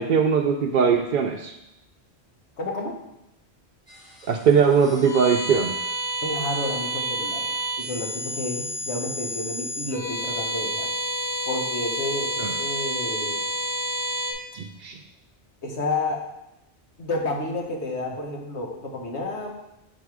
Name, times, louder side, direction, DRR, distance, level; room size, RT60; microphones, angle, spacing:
voice 1, 0.0-1.5 4.3-5.7 12.4-12.5 14.5-15.0, right 6 dB, 60° right, 1 dB, 0.6 m, -20 dB
voice 2, 2.6-2.9 6.2-7.5 7.8-10.9 11.5-13.4 15.6-16.2 17.0-19.6, left 2 dB, 85° left, 0 dB, 1.5 m, -30 dB
sound 1, 3.9-14.3, right 1 dB, 40° left, 2.1 m, -29 dB
6.6 x 4.2 x 4.7 m, 0.86 s
omnidirectional pair, 1.1 m